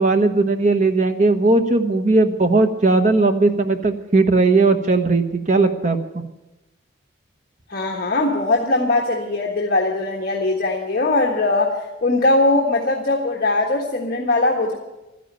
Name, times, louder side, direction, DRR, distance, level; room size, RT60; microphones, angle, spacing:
voice 1, 0.0-6.2, right 3 dB, 35° right, 7 dB, 1.1 m, -17 dB
voice 2, 7.7-14.7, left 2 dB, 50° left, -2 dB, 1.5 m, -20 dB
13.0 x 10.5 x 9.0 m, 1.0 s
head